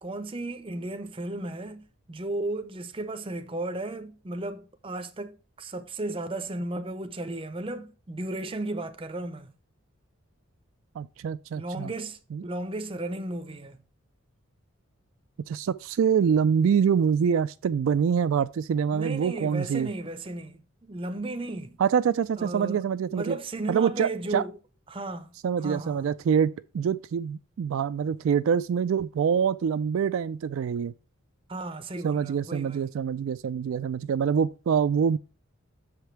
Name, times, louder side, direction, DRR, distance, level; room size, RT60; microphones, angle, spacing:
voice 1, 0.0-9.5 11.6-13.8 18.9-21.8 22.4-24.6 24.9-26.1 31.5-32.9, right 2 dB, 25° right, 0.6 m, -35 dB
voice 2, 11.0-11.9 12.3-12.4 15.5-19.9 21.8-23.4 23.7-24.4 25.4-30.9 32.0-35.2, right 7 dB, 70° right, 0.3 m, -25 dB
6.4 x 5.1 x 4.5 m
head